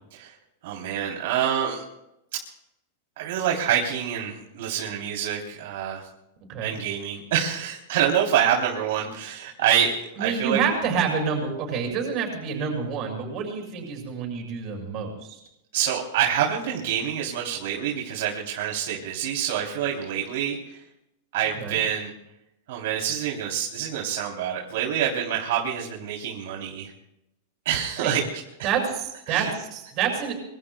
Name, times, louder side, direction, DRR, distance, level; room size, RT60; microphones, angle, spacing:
voice 1, 0.6-1.8 3.2-6.1 6.6-10.6 15.7-20.8 21.3-22.1 22.7-26.9 27.6-28.4 29.3-29.5, right 9 dB, 65° right, -2 dB, 3.3 m, -26 dB
voice 2, 10.2-15.4 21.6-21.8 28.0-28.1 28.6-30.3, right 6 dB, 35° right, 2 dB, 6.6 m, -28 dB
26.0 x 24.0 x 2.3 m, 0.84 s
supercardioid pair, 160°, 0 cm